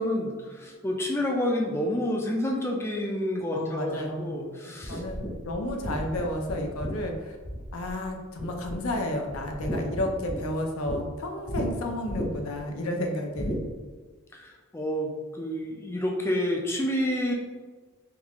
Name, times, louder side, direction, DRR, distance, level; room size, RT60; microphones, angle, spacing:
voice 1, 0.0-5.0 14.3-17.3, left 1 dB, 10° left, 0 dB, 0.3 m, -29 dB
voice 2, 3.5-4.3 4.7-7.4 7.7-13.6, left 1 dB, 85° left, 3 dB, 0.5 m, -32 dB
sound 1, 4.8-8.1 8.4-9.0 9.3-11.0 11.5-11.7 12.1-12.6 13.4-13.6, equal, 40° left, 0.8 m, -34 dB
3.8 x 2.4 x 2.9 m, 1.4 s
head